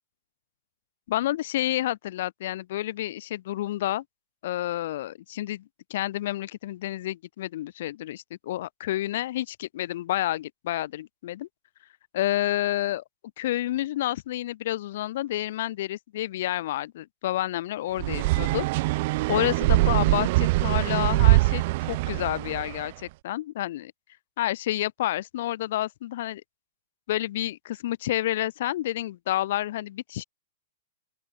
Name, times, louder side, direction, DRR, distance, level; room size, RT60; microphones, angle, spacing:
voice 1, 1.1-4.0 4.4-5.6 5.9-11.5 12.1-13.0 13.4-18.7 19.3-23.9 24.4-26.4 27.1-30.2, left 14 dB, 60° left, 0.7 m, -29 dB
sound 1, 18.0-22.9, right 21 dB, 50° right, 0.8 m, -23 dB
open air
hypercardioid pair, 135°, 0 cm